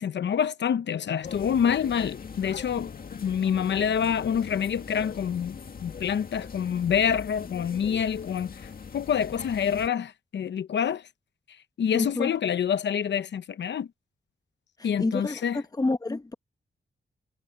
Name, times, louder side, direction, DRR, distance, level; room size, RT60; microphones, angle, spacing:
voice 1, 0.0-11.1 11.8-13.9 14.8-15.6, left 8 dB, 75° left, 0.8 m, -27 dB
sound 1, 1.2-9.9, left 6 dB, 55° left, 1.9 m, -41 dB
voice 2, 11.9-12.3 15.0-16.3, left 2 dB, 20° left, 1.1 m, -28 dB
wide cardioid pair, 120°, 19 cm